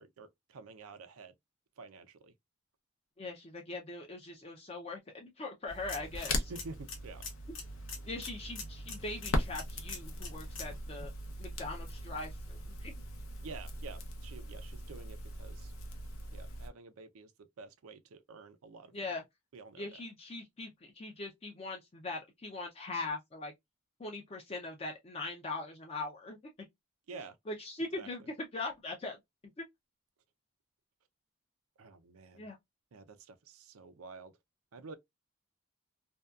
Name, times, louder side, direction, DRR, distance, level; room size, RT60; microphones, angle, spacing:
voice 1, 0.0-1.3 1.8-2.3 6.5-7.2 13.4-15.7 16.3-19.1 19.5-19.9 27.1-27.4 28.0-28.1 31.8-32.5 32.9-34.3 34.7-35.0, right 4 dB, 90° right, 0.5 m, -49 dB
voice 2, 3.2-6.5 8.0-11.1 11.4-12.9 18.9-19.2 19.8-23.5 24.0-26.4 27.5-29.2 29.6-29.7 32.3-32.6, left 2 dB, 30° left, 0.4 m, -41 dB
Crackle, 5.7-16.7, left 1 dB, 90° left, 0.6 m, -40 dB
sound 1, 5.7-10.8, left 5 dB, 60° left, 0.8 m, -47 dB
2.6 x 2.2 x 2.2 m
head